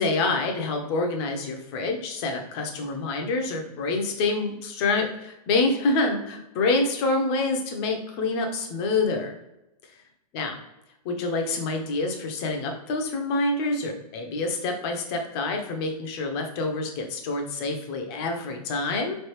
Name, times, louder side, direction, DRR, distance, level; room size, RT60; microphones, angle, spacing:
voice 1, 0.0-9.3 10.3-10.5 11.0-19.2, left 3 dB, 40° left, 3 dB, 0.8 m, -27 dB
4.0 x 3.3 x 3.1 m, 0.91 s
hypercardioid pair, 130°, 20 cm